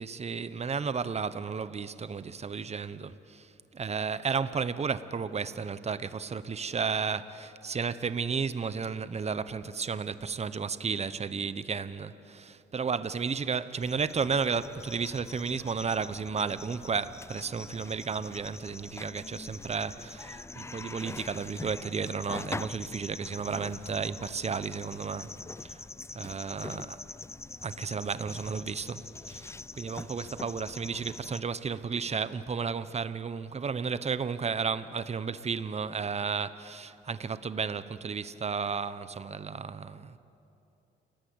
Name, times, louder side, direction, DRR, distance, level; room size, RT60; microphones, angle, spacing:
voice 1, 0.0-25.3 25.6-25.8 26.1-26.9 27.6-40.2, right 5 dB, 35° right, 1.0 m, -33 dB
sound 1, 13.8-31.4, left 3 dB, 15° left, 0.4 m, -44 dB
29.5 x 18.5 x 8.1 m
cardioid pair, 90°, 20 cm